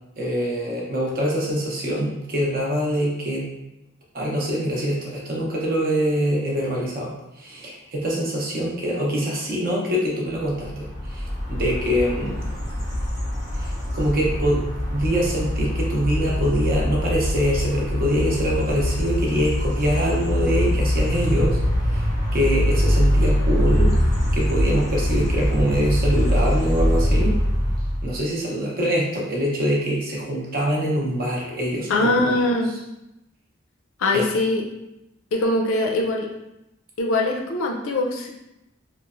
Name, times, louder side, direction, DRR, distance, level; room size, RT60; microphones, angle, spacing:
voice 1, 0.2-3.5 4.1-12.3 13.6-14.6 14.9-21.6 21.9-22.1 22.3-24.0 24.3-27.4 28.0-32.1 34.1-34.3, equal, 40° right, -3 dB, 0.6 m, -24 dB
sound 1, 10.6-28.2, equal, 15° left, 0.5 m, -23 dB
voice 2, 31.9-32.7 34.0-34.6 35.3-36.3 37.0-38.3, left 2 dB, 70° left, 0 dB, 0.4 m, -22 dB
3.0 x 2.0 x 2.4 m, 0.89 s
head